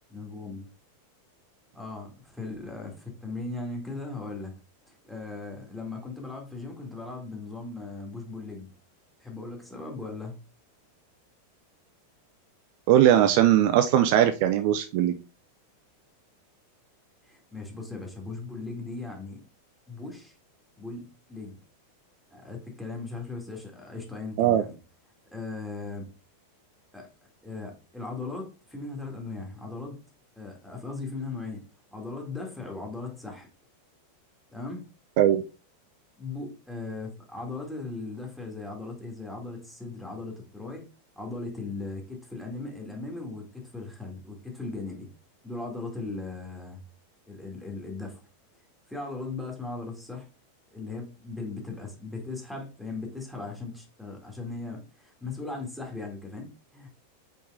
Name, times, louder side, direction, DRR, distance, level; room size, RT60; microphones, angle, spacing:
voice 1, 0.1-0.7 1.7-4.5 4.9-8.7 9.2-10.4 17.2-19.4 19.9-20.4 20.8-21.6 22.3-24.8 25.3-26.1 26.9-27.1 27.4-30.0 30.4-31.6 31.9-33.5 34.5-34.8 36.2-40.9 41.2-45.1 45.4-46.8 47.3-48.2 48.9-50.3 50.7-56.9, left 3 dB, ahead, 2.1 m, -38 dB
voice 2, 12.9-15.1 24.4-24.6 35.2-35.4, right 11 dB, 45° right, 0.5 m, -20 dB
5.4 x 5.4 x 3.6 m
figure-of-eight pair, 90°, 0 cm